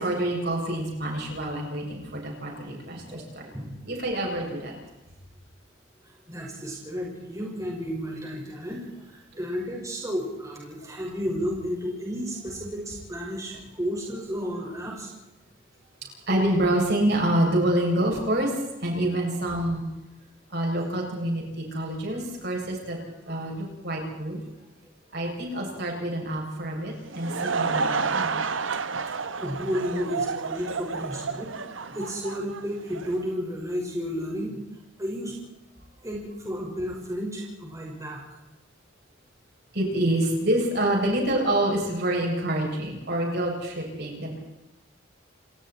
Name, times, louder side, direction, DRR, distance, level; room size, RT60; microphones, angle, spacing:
voice 1, 0.0-3.4 3.9-4.7 16.3-18.5 18.8-19.9 20.5-23.0 23.2-24.4 25.1-28.4 39.7-44.4, right 1 dB, 55° right, -1 dB, 8.0 m, -27 dB
voice 2, 3.1-3.9 6.0-15.1 29.1-31.5 31.9-34.6 35.0-35.3 36.0-38.2, equal, 15° right, -3 dB, 6.1 m, -32 dB
Laughter / Crowd, 26.9-33.2, right 5 dB, 80° right, 1.3 m, -30 dB
29.0 x 20.0 x 4.6 m, 1.0 s
head